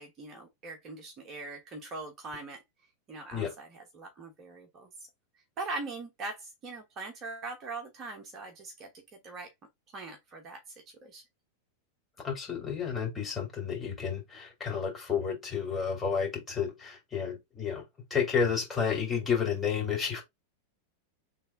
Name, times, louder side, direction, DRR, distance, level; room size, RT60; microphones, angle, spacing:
voice 1, 0.0-2.6 3.1-4.9 5.6-8.9 9.2-9.5 9.9-10.6 11.0-11.2, right 3 dB, 30° right, 1.2 m, -41 dB
voice 2, 12.2-17.8 18.1-20.2, left 6 dB, 15° left, 2.6 m, -31 dB
3.4 x 3.3 x 4.3 m
figure-of-eight pair, 90°, 0 cm